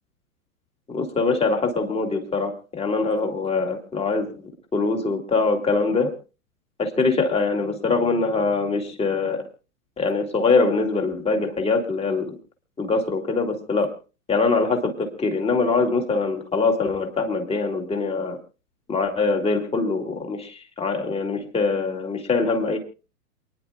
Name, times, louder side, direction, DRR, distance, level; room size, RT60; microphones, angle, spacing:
voice 1, 0.9-4.4 4.7-6.1 6.8-9.5 10.0-12.4 12.8-13.9 14.3-18.4 18.9-22.8, left 4 dB, 15° left, 4 dB, 2.3 m, -23 dB
28.5 x 10.5 x 2.3 m, 0.33 s
hypercardioid pair, 130°, 46 cm